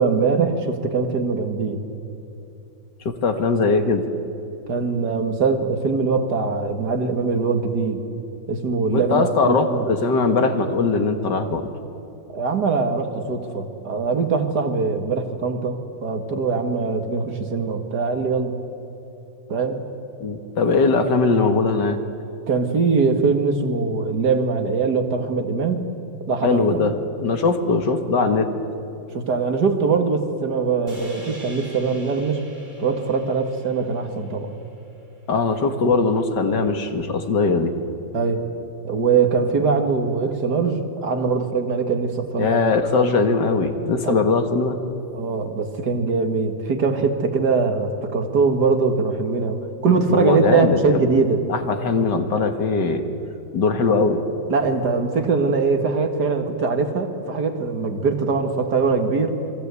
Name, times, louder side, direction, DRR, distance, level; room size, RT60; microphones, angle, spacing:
voice 1, 0.0-1.8 4.7-8.0 8.5-9.9 12.3-18.6 19.5-19.8 20.8-20.9 22.5-25.9 26.3-26.9 29.1-32.4 32.8-34.5 38.1-38.4 38.8-42.6 44.0-44.2 45.1-51.4 54.5-59.4, right 4 dB, 60° right, 5 dB, 2.5 m, -22 dB
voice 2, 3.1-4.0 8.9-11.7 20.2-22.0 26.4-26.9 27.2-28.5 35.3-37.7 42.4-44.8 50.1-51.0 51.5-53.0 53.5-54.2, left 4 dB, 65° left, 7 dB, 2.3 m, -20 dB
sound 1, 30.9-35.3, right 1 dB, 25° right, 5.3 m, -44 dB
28.5 x 22.0 x 8.4 m, 2.9 s
omnidirectional pair, 2.0 m